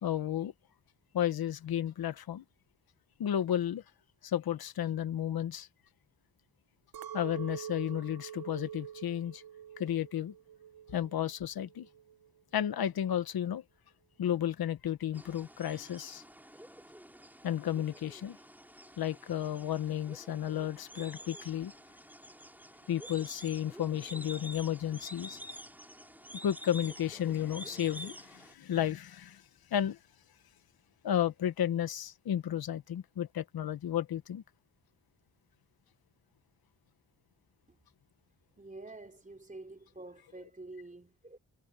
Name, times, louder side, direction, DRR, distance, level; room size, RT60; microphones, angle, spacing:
voice 1, 0.0-0.5 1.1-2.4 3.2-3.8 4.2-5.7 7.1-9.4 9.8-10.3 10.9-11.9 12.5-13.6 14.2-16.2 17.4-18.4 19.0-21.7 22.9-25.4 26.4-29.4 29.7-30.0 31.0-34.4, left 10 dB, 80° left, 1.2 m, -33 dB
Chink clink, 6.9-11.3 11.7-12.3, right 9 dB, 75° right, 0.9 m, -45 dB
sound 1, 15.1-28.5, equal, 5° right, 5.3 m, -49 dB
voice 2, 38.6-41.4, right 2 dB, 20° right, 4.7 m, -48 dB
cardioid pair, 75°, 37 cm